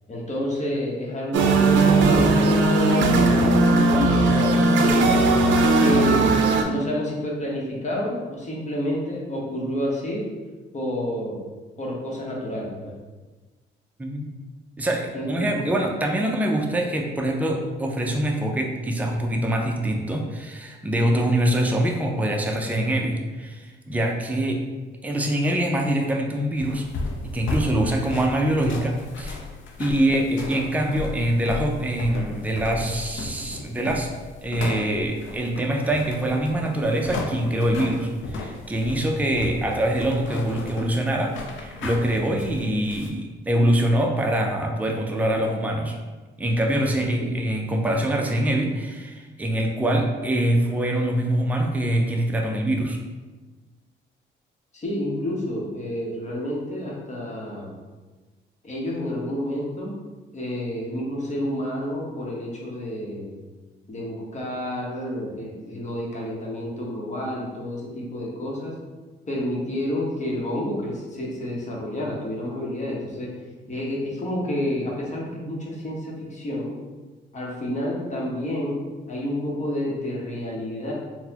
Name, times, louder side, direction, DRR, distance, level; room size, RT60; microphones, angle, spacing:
voice 1, 0.1-5.1 5.6-10.2 10.7-11.4 11.8-12.9 15.1-15.6 47.2-47.3 54.7-57.7 58.6-59.9 60.3-63.4 63.9-68.7 69.3-73.3 73.7-76.7 77.3-78.8 79.1-80.9, left 1 dB, 35° left, -3 dB, 0.9 m, -29 dB
sound 1, 1.3-6.6, right 2 dB, 70° right, 0.4 m, -18 dB
voice 2, 14.0-14.3 14.8-24.6 25.0-26.9 27.2-29.4 29.8-34.1 34.4-46.0 46.4-53.0, right 1 dB, 10° right, 1 dB, 0.4 m, -24 dB
sound 2, 26.6-43.1, left 3 dB, 75° left, 0.5 m, -34 dB
3.9 x 2.1 x 2.8 m, 1.3 s
cardioid pair, 90°, 20 cm